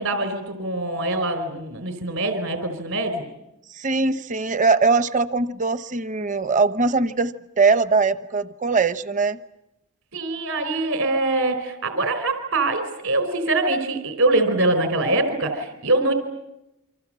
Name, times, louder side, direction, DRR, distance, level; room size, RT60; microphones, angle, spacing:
voice 1, 0.0-3.2 10.1-16.1, right 2 dB, 70° right, 8 dB, 4.1 m, -23 dB
voice 2, 3.8-9.4, right 4 dB, 35° right, 12 dB, 1.0 m, -21 dB
28.0 x 26.0 x 7.5 m, 0.90 s
head